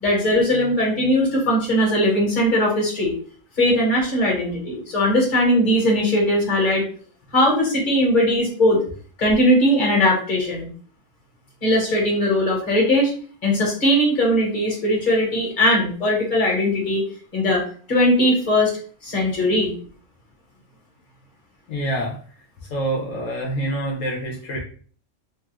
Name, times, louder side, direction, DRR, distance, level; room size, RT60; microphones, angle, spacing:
voice 1, 0.0-3.1 3.6-6.8 7.3-8.8 9.2-10.7 11.6-13.1 13.4-17.0 17.3-18.7 19.0-19.7, left 1 dB, 40° left, -3 dB, 1.3 m, -19 dB
voice 2, 21.7-22.2 22.6-24.6, right 1 dB, 80° left, 0 dB, 1.0 m, -26 dB
3.0 x 2.3 x 2.9 m, 0.43 s
omnidirectional pair, 1.3 m